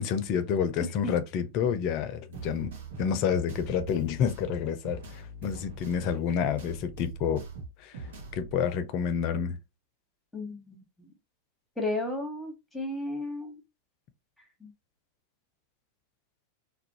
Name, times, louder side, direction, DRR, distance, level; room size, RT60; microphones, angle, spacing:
voice 1, 0.0-2.7 3.0-5.0 5.4-7.4 7.8-7.9 8.3-9.6, left 7 dB, 50° left, 0.5 m, -28 dB
sound 1, 2.3-8.6, right 3 dB, 70° right, 0.7 m, -43 dB
voice 2, 10.3-11.1 11.8-13.6 14.6-14.7, left 2 dB, 5° left, 1.1 m, -34 dB
2.4 x 2.0 x 2.8 m
hypercardioid pair, 95°, 0 cm